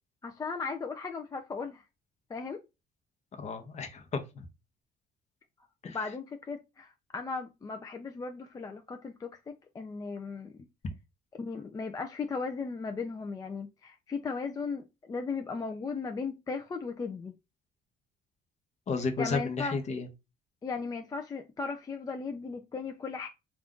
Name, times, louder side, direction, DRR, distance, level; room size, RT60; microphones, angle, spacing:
voice 1, 0.2-1.8 2.3-2.6 5.8-10.5 11.4-17.3 19.2-19.8 20.6-23.3, left 4 dB, 20° left, 0.3 m, -36 dB
voice 2, 3.3-4.5 5.8-6.0 18.9-20.1, left 4 dB, 40° left, 0.7 m, -33 dB
2.5 x 2.4 x 3.5 m
cardioid pair, 110°, 17 cm